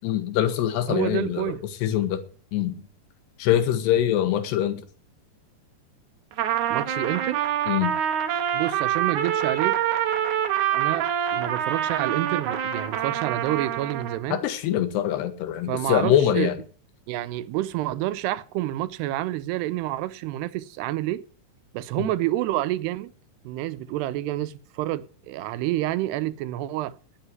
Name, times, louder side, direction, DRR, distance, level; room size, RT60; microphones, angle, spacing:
voice 1, 0.0-2.2 2.5-2.9 3.4-4.8 7.7-8.0 14.3-16.6 22.0-22.1, left 11 dB, 90° left, 3.5 m, -24 dB
voice 2, 0.9-1.6 6.7-7.4 8.5-9.8 10.7-14.4 15.7-16.5 17.1-21.2 21.7-23.1 23.5-27.0, right 15 dB, 85° right, 2.8 m, -28 dB
Trumpet, 6.3-14.2, right 10 dB, 65° right, 2.1 m, -26 dB
10.0 x 8.8 x 9.2 m
omnidirectional pair, 4.7 m